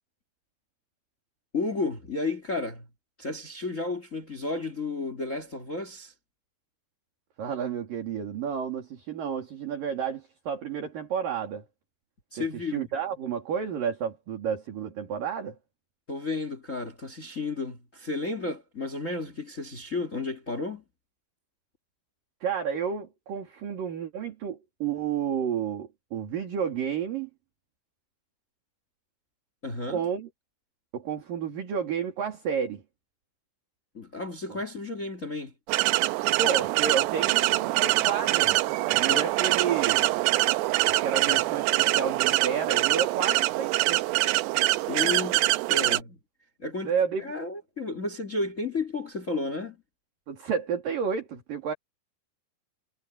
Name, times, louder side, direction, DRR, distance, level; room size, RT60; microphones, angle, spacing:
voice 1, 1.5-2.9 3.2-6.1 12.3-12.9 16.1-20.8 29.6-30.0 33.9-35.5 39.1-39.2 44.9-46.2 46.6-46.9 47.2-49.8, left 3 dB, 40° left, 1.1 m, -32 dB
voice 2, 7.4-11.6 12.4-12.5 12.7-15.6 22.4-27.3 29.9-30.3 30.9-32.8 34.5-34.6 36.4-38.5 38.9-40.1 40.8-44.2 46.8-47.3 50.3-51.7, right 7 dB, 55° right, 4.6 m, -31 dB
sound 1, 35.7-46.0, right 18 dB, 80° right, 2.6 m, -24 dB
omnidirectional pair, 5.1 m